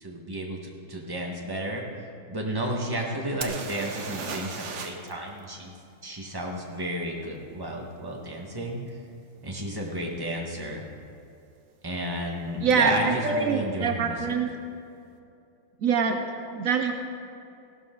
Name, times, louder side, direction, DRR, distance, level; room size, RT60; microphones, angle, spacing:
voice 1, 0.0-5.7 6.0-9.0 9.4-10.9 11.8-14.2, right 1 dB, 15° right, -1 dB, 1.3 m, -32 dB
sound 1, 3.4-5.1 5.4-5.5 8.9-9.0 9.6-9.8 10.1-10.7 12.7-12.8 13.1-13.2, right 5 dB, 55° right, 0.8 m, -36 dB
voice 2, 12.6-14.5 15.8-16.9, right 5 dB, 90° right, 5 dB, 0.7 m, -25 dB
16.0 x 12.5 x 3.9 m, 2.6 s
omnidirectional pair, 2.3 m